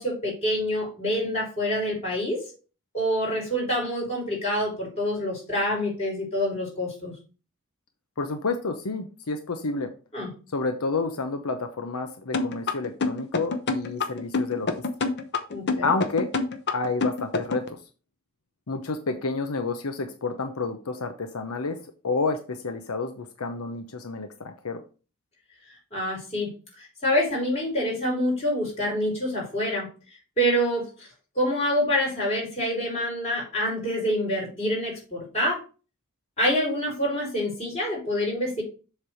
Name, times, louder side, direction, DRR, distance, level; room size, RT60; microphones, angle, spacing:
voice 1, 0.0-2.4 2.9-7.1 10.1-10.3 15.5-15.9 25.9-26.5 27.0-29.9 30.4-31.1 31.4-35.6 36.4-38.6, equal, 30° left, -4 dB, 4.4 m, -26 dB
voice 2, 8.2-9.9 10.5-14.7 15.8-16.3 16.7-17.8 18.7-21.8 22.0-24.8, left 3 dB, 85° left, 7 dB, 0.8 m, -29 dB
sound 1, 12.3-17.7, left 3 dB, 50° left, 0.9 m, -26 dB
7.3 x 3.4 x 6.3 m, 0.34 s
head